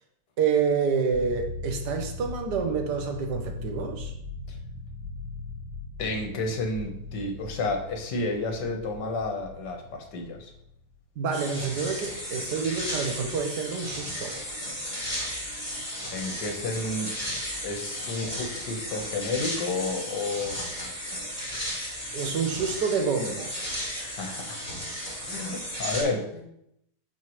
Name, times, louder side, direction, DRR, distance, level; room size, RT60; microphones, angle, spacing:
voice 1, 0.4-4.1 11.2-14.4 22.1-23.5, right 5 dB, 75° right, 1.6 m, -28 dB
sound 1, 1.1-10.9, left 3 dB, 55° right, 2.1 m, -39 dB
voice 2, 6.0-10.5 16.1-17.3 17.6-20.6 24.0-24.6 25.3-26.5, left 2 dB, 75° left, 1.7 m, -31 dB
sound 2, 11.3-26.0, equal, 20° left, 3.1 m, -34 dB
11.5 x 4.5 x 3.1 m
omnidirectional pair, 1.8 m